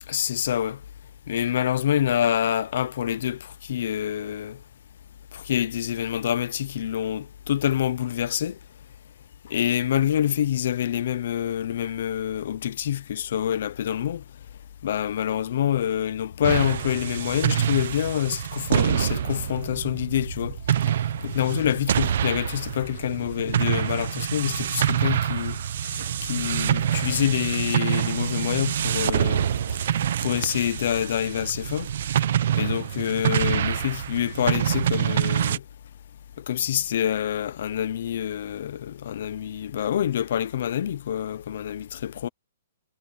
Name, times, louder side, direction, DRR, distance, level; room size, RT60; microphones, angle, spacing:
voice 1, 0.1-0.8 1.3-4.6 5.3-8.6 9.5-14.2 14.8-20.6 21.2-25.6 25.8-29.5 30.2-31.9 32.6-35.6 36.5-42.3, left 10 dB, 55° left, 0.8 m, -26 dB
sound 1, 16.0-30.7, left 7 dB, 75° left, 4.4 m, -45 dB
sound 2, 16.4-35.6, right 10 dB, 55° right, 1.0 m, -26 dB
hypercardioid pair, 165°, 0 cm